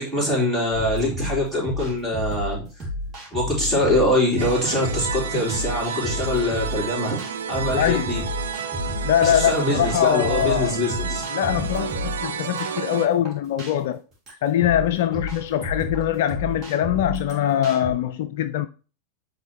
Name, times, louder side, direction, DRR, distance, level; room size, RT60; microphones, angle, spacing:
voice 1, 0.0-2.6 3.3-7.2 7.5-8.2 9.0-11.2, left 1 dB, 5° right, 3.5 m, -23 dB
sound 1, 0.7-17.9, left 1 dB, 25° right, 2.9 m, -32 dB
sound 2, 4.4-13.1, right 7 dB, 65° right, 0.6 m, -31 dB
voice 2, 7.8-8.1 9.0-10.8 11.3-14.0 14.4-18.7, left 10 dB, 55° left, 0.4 m, -22 dB
8.8 x 3.6 x 2.9 m
figure-of-eight pair, 90°, 0 cm